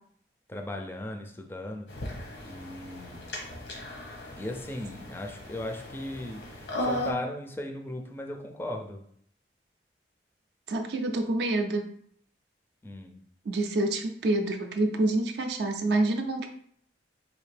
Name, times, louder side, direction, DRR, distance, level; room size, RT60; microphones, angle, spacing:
voice 1, 0.5-1.9 2.5-3.3 4.4-9.0 12.8-13.1, left 1 dB, 10° left, 3 dB, 0.4 m, -37 dB
sound 1, 1.9-7.1, left 1 dB, 80° left, 1.0 m, -37 dB
voice 2, 10.7-11.9 13.5-16.5, right 2 dB, 65° right, 4 dB, 0.4 m, -27 dB
4.1 x 2.6 x 3.3 m, 0.63 s
head